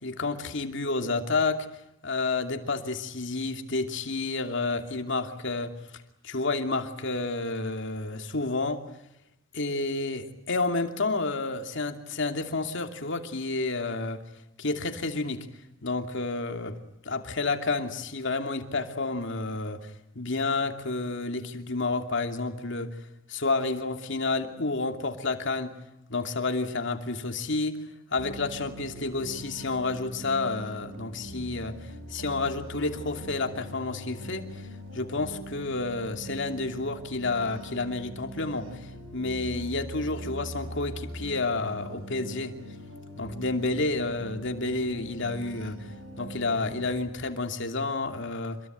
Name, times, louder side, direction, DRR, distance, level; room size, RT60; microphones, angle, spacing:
voice 1, 0.0-1.7 2.0-5.8 6.2-8.9 9.5-14.2 14.6-15.5 15.8-23.0 23.3-25.7 26.1-27.8 28.1-34.6 34.9-42.5 43.2-48.6, left 3 dB, 65° left, 6 dB, 2.7 m, -30 dB
sound 1, 28.2-47.0, right 1 dB, 85° right, 6.5 m, -42 dB
27.0 x 22.5 x 9.2 m, 0.85 s
head